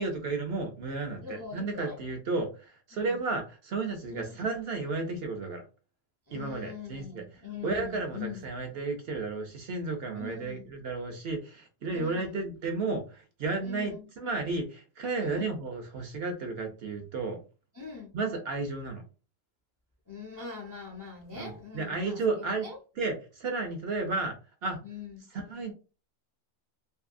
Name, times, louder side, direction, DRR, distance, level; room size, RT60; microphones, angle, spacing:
voice 1, 0.0-5.6 6.3-7.2 7.6-17.4 18.1-19.0 21.3-22.7 23.0-24.3 24.6-24.8 25.3-25.7, right 3 dB, 60° right, 0.7 m, -33 dB
voice 2, 1.2-2.0 2.9-3.2 4.1-4.3 6.3-8.4 10.1-10.7 11.9-12.4 13.6-14.0 15.2-15.5 17.7-18.1 20.1-22.8 23.9-24.2 24.8-25.2, left 6 dB, 30° left, 0.3 m, -42 dB
2.6 x 2.6 x 2.4 m
omnidirectional pair, 1.4 m